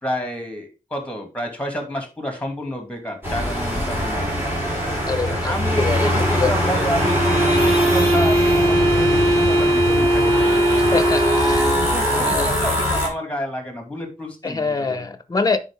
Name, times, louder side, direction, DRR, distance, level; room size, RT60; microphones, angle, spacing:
voice 1, 0.0-4.5 5.2-10.9 11.6-15.1, equal, 10° left, 2.3 m, -30 dB
sound 1, 3.2-13.1, equal, 15° right, 3.8 m, -22 dB
voice 2, 5.1-6.1 6.4-6.6 10.9-11.7 12.2-12.5 14.4-15.6, left 4 dB, 25° left, 0.9 m, -24 dB
sound 2, 6.9-11.8, right 1 dB, 45° right, 3.1 m, -19 dB
10.0 x 4.6 x 3.5 m
wide cardioid pair, 110°, 14 cm